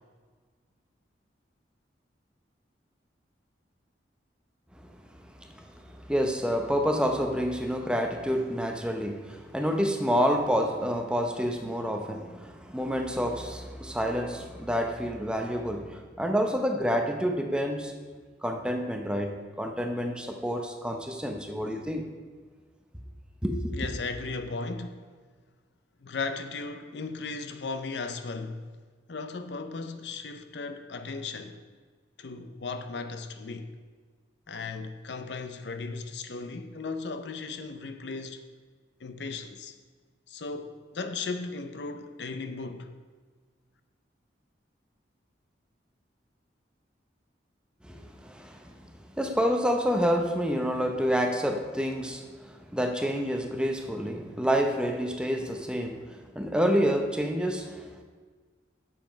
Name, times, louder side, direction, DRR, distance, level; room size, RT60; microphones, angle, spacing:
voice 1, 5.2-17.9 18.4-22.1 23.4-23.8 47.8-58.0, equal, 5° right, 0.6 m, -28 dB
voice 2, 23.7-25.0 26.0-28.7 29.1-31.6 32.2-33.7 34.5-38.4 39.0-39.8 40.3-42.9, left 4 dB, 70° left, 0.6 m, -36 dB
7.5 x 7.4 x 5.1 m
head